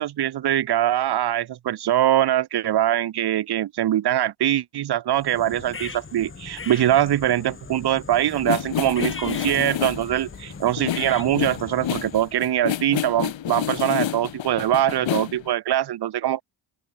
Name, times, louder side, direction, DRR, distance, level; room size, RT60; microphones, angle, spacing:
voice 1, 0.0-16.4, right 12 dB, 55° right, 0.9 m, -23 dB
sound 1, 5.1-12.4, left 4 dB, 25° left, 2.3 m, -39 dB
sound 2, 8.3-15.5, left 11 dB, 70° left, 2.5 m, -29 dB
open air
cardioid pair, 105°, 47 cm